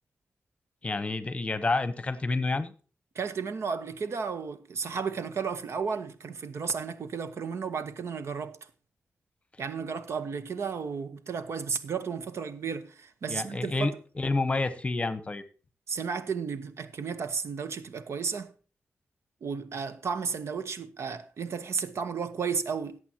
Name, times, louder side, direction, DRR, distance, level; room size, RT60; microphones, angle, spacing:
voice 1, 0.8-2.7 13.3-15.4, left 3 dB, 25° left, 1.0 m, -29 dB
voice 2, 3.1-8.6 9.6-14.0 15.9-18.5 19.4-23.0, right 5 dB, 80° right, 1.1 m, -33 dB
18.0 x 8.0 x 2.9 m
wide cardioid pair, 150°, 5 cm